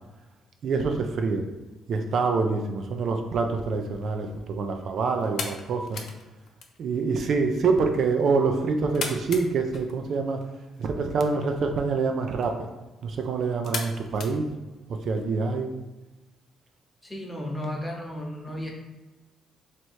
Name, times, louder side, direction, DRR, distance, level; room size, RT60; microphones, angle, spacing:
voice 1, 0.6-1.5 1.9-6.0 6.8-10.4 10.8-12.7 13.0-14.5 15.1-15.7, right 4 dB, 65° right, 4 dB, 0.4 m, -26 dB
sound 1, 3.8-15.2, left 4 dB, 65° left, 0.6 m, -41 dB
voice 2, 17.0-18.7, left 1 dB, 15° left, 0 dB, 1.0 m, -34 dB
3.1 x 2.9 x 4.5 m, 1.1 s
cardioid pair, 90°, 0 cm